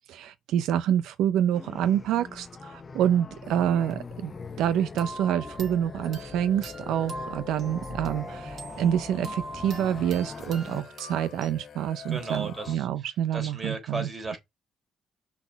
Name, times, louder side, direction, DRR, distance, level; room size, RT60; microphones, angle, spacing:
voice 1, 0.1-4.3 4.6-14.1, right 10 dB, 90° right, 0.5 m, -27 dB
sound 1, 1.5-10.8, left 4 dB, 35° left, 0.9 m, -42 dB
sound 2, 3.4-12.8, left 8 dB, 55° left, 1.6 m, -46 dB
sound 3, 5.0-11.5, right 2 dB, 55° right, 3.6 m, -42 dB
voice 2, 12.1-12.9 13.3-14.4, right 3 dB, 30° right, 3.6 m, -34 dB
5.9 x 4.2 x 5.5 m
cardioid pair, 90°, 0 cm